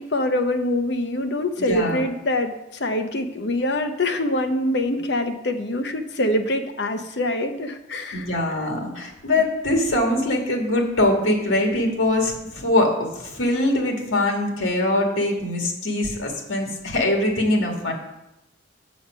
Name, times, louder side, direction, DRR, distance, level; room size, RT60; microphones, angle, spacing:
voice 1, 0.0-8.3, left 1 dB, 60° left, 7 dB, 0.8 m, -24 dB
voice 2, 1.7-2.0 8.1-17.9, left 1 dB, 90° left, 2 dB, 1.9 m, -22 dB
7.2 x 6.2 x 6.2 m, 0.91 s
head